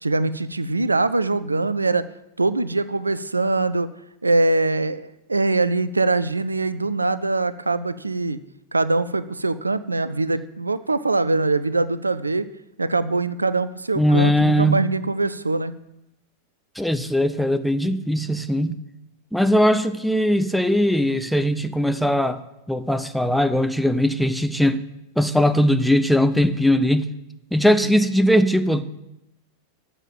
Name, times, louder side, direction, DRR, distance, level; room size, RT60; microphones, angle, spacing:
voice 1, 0.0-2.1 2.4-3.9 4.2-8.4 8.7-12.5 12.8-15.7, right 2 dB, 80° right, 0.3 m, -22 dB
voice 2, 14.0-14.8 16.8-18.8 19.3-22.4 22.7-24.8 25.2-27.1 27.5-28.8, equal, ahead, 0.5 m, -20 dB
7.3 x 5.4 x 7.5 m
figure-of-eight pair, 90°, 0 cm